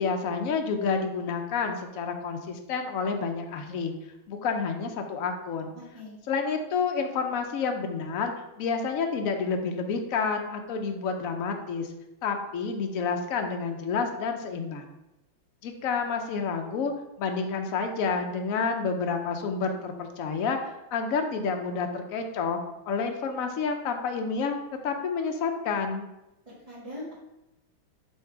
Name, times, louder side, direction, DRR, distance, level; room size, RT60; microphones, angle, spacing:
voice 1, 0.0-3.9 4.3-5.7 6.3-8.3 8.6-11.9 12.2-14.9 15.6-16.9 17.2-22.6 22.9-24.6 24.8-26.1, left 5 dB, 75° left, 4 dB, 0.7 m, -29 dB
voice 2, 26.5-27.1, left 1 dB, 20° right, -10 dB, 1.5 m, -41 dB
5.8 x 3.6 x 4.6 m, 0.93 s
omnidirectional pair, 2.2 m